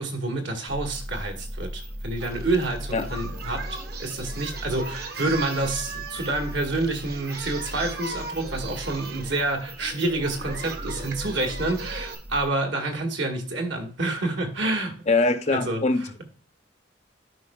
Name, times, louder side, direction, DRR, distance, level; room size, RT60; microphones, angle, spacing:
voice 1, 0.0-15.0 15.5-16.2, right 2 dB, 70° right, 1.9 m, -28 dB
sound 1, 0.7-12.5, equal, 10° right, 0.4 m, -38 dB
Singing, 2.2-12.1, right 3 dB, 55° right, 1.4 m, -38 dB
voice 2, 15.1-16.2, left 3 dB, 35° left, 0.7 m, -23 dB
13.0 x 5.4 x 2.4 m
head